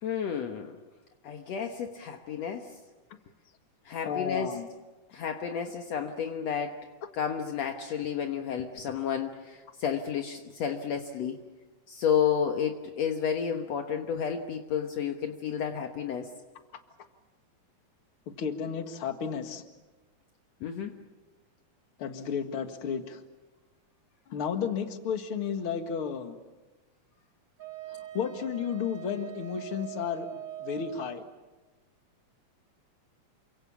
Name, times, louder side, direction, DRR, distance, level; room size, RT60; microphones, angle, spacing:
voice 1, 0.0-0.8 1.2-2.7 3.9-4.5 5.1-6.8 7.2-11.4 11.9-16.3 20.6-21.0, left 7 dB, 65° left, 4 dB, 2.3 m, -31 dB
voice 2, 3.9-4.7 18.3-19.6 22.0-23.2 24.3-26.4 27.9-31.2, left 7 dB, 50° left, 6 dB, 2.4 m, -33 dB
Wind instrument woodwind instrument, 27.6-31.2, right 12 dB, 50° right, 3.0 m, -42 dB
29.0 x 25.0 x 7.2 m, 1.2 s
omnidirectional pair, 3.4 m